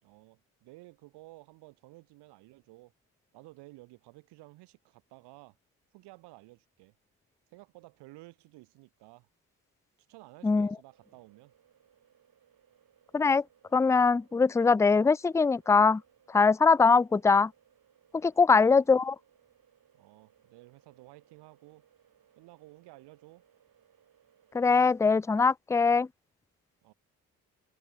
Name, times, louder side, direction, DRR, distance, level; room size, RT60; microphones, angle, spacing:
voice 1, 0.0-2.9 3.3-5.6 5.9-6.9 7.5-9.3 10.1-11.5 18.5-18.8 19.9-21.8 22.4-23.4 26.8-26.9, right 21 dB, 70° right, 4.3 m, -53 dB
sound 1, 10.9-24.8, right 9 dB, 55° right, 7.7 m, -66 dB
voice 2, 13.7-16.0 16.3-17.5 18.1-19.1 24.5-26.1, left 4 dB, 5° left, 0.4 m, -22 dB
figure-of-eight pair, 45°, 42 cm